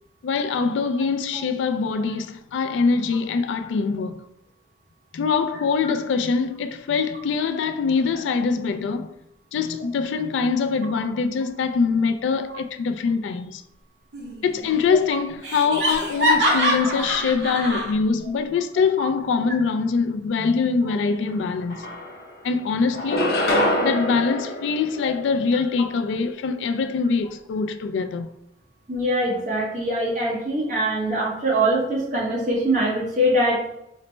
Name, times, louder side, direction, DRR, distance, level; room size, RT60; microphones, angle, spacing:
voice 1, 0.2-4.2 5.1-9.1 9.5-13.6 14.4-21.8 22.4-23.3 23.8-28.3, left 5 dB, 85° left, 0.3 m, -23 dB
Laughter, 14.1-14.7 14.9-15.0 15.4-17.9, equal, 75° right, 0.8 m, -24 dB
sound 1, 21.3-21.4 21.7-22.5 22.9-25.5, left 1 dB, 55° left, 0.6 m, -25 dB
voice 2, 28.9-33.6, right 1 dB, 45° right, 1.1 m, -23 dB
4.0 x 2.0 x 3.2 m
head